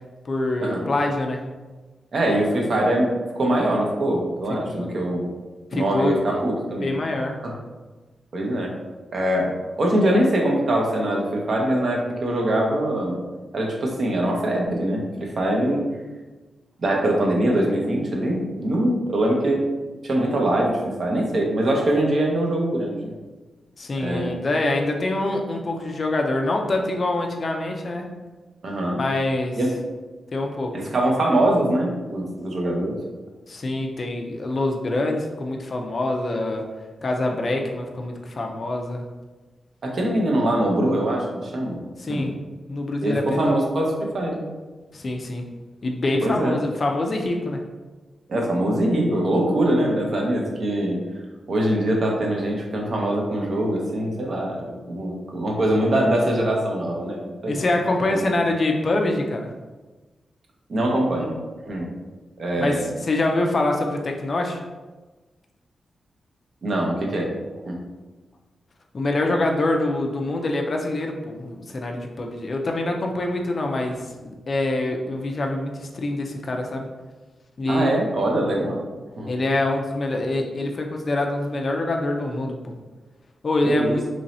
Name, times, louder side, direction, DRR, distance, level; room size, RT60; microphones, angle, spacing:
voice 1, 0.2-1.4 4.5-4.9 5.7-6.2 6.8-7.4 23.8-28.1 28.9-29.6 30.3-30.8 33.5-36.7 37.0-39.0 40.4-40.5 42.0-42.4 42.7-43.6 44.9-45.4 45.8-47.6 57.5-59.5 62.6-64.6 68.9-76.9 77.6-77.9 79.3-82.7 83.4-84.0, left 2 dB, 35° left, 2 dB, 0.4 m, -25 dB
voice 2, 2.1-5.3 5.7-6.9 7.4-7.6 8.3-8.7 9.1-9.5 9.8-13.1 13.5-15.8 16.8-19.6 20.0-23.1 24.0-24.4 28.6-29.0 29.6-29.8 30.7-33.0 39.8-41.8 42.1-42.3 43.0-44.5 46.2-46.6 48.3-51.0 51.5-57.7 58.1-58.2 60.7-61.4 61.7-61.9 62.4-62.9 66.6-67.3 67.7-67.8 77.7-78.8 79.2-79.3 83.6-84.0, right 1 dB, 45° right, 0 dB, 0.7 m, -23 dB
3.1 x 2.6 x 4.0 m, 1.2 s
wide cardioid pair, 175°, 0 cm